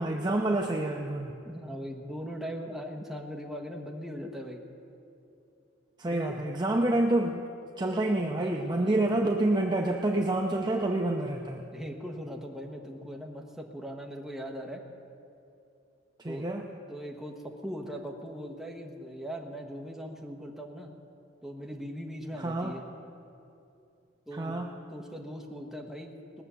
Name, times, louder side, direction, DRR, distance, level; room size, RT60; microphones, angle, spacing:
voice 1, 0.0-1.3 6.0-7.4 7.8-11.6 16.2-16.7 22.4-22.7 24.3-24.7, right 1 dB, 20° right, 1 dB, 0.6 m, -28 dB
voice 2, 1.4-4.6 6.0-6.4 8.4-9.0 11.7-14.8 16.3-16.5 16.9-20.9 21.4-22.8 24.3-24.6 24.9-26.4, equal, ahead, -1 dB, 1.1 m, -40 dB
19.0 x 6.9 x 6.9 m, 2.7 s
head